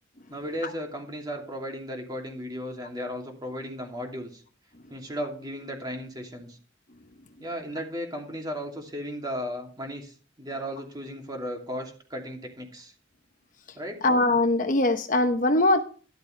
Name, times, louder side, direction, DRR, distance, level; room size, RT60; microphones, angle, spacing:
voice 1, 0.3-4.4 4.9-6.6 7.4-12.9 13.7-14.1, equal, 20° right, 2 dB, 2.7 m, -35 dB
voice 2, 14.0-15.8, left 2 dB, 45° left, 7 dB, 0.9 m, -21 dB
13.0 x 12.0 x 3.3 m, 0.39 s
head